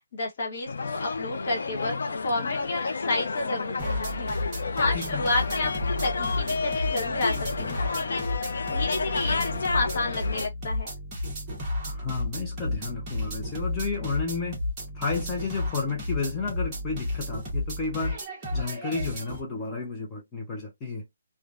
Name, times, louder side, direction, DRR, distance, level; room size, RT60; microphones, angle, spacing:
voice 1, 0.1-4.3 4.8-8.4 8.7-10.9, left 2 dB, 45° left, 1.0 m, -30 dB
sound 1, 0.7-10.5, left 4 dB, 70° left, 0.5 m, -31 dB
sound 2, 3.8-19.4, left 1 dB, 15° right, 1.1 m, -32 dB
voice 2, 4.9-5.3 11.8-14.6 14.9-18.2 18.5-21.1, left 4 dB, 15° left, 0.7 m, -32 dB
3.1 x 2.2 x 2.4 m
hypercardioid pair, 170°, 0 cm